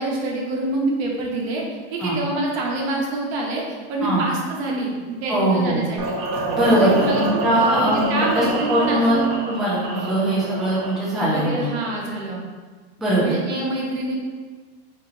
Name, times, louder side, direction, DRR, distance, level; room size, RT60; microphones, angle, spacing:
voice 1, 0.0-1.6 1.9-6.2 6.7-9.3 11.3-12.4 13.2-14.2, right 2 dB, 70° right, -1 dB, 1.0 m, -26 dB
voice 2, 5.3-5.8 6.5-9.2 9.5-11.6 13.0-13.4, right 1 dB, ahead, -8 dB, 0.4 m, -21 dB
sound 1, 6.0-11.9, right 2 dB, 45° right, 0.6 m, -28 dB
2.9 x 2.9 x 3.7 m, 1.4 s
supercardioid pair, 160°, 33 cm